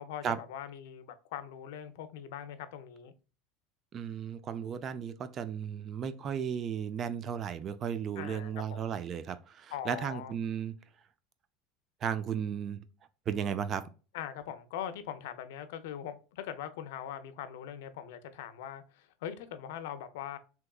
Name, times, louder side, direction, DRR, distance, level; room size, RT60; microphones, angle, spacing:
voice 1, 0.0-3.1 8.2-8.8 9.7-10.3 14.1-20.4, left 10 dB, 80° left, 0.5 m, -41 dB
voice 2, 3.9-10.7 12.0-12.8 13.3-13.8, right 8 dB, 35° right, 0.4 m, -35 dB
3.5 x 2.9 x 2.3 m
supercardioid pair, 135°, 0 cm